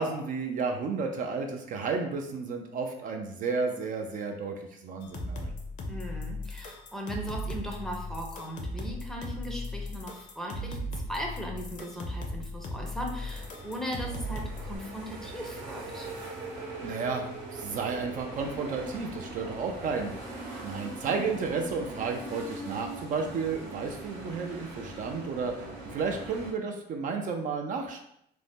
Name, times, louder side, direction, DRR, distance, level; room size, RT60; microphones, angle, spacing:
voice 1, 0.0-4.5 4.8-5.5 16.8-17.2 17.5-20.1 20.6-28.0, right 4 dB, 50° right, 4 dB, 0.4 m, -32 dB
sound 1, 5.0-14.8, left 1 dB, 50° left, 0.5 m, -37 dB
voice 2, 5.9-16.1, equal, ahead, 0 dB, 0.5 m, -38 dB
sound 2, 13.1-26.5, right 2 dB, 75° right, 0.9 m, -41 dB
2.5 x 2.0 x 3.4 m, 0.75 s
cardioid pair, 110°, 17 cm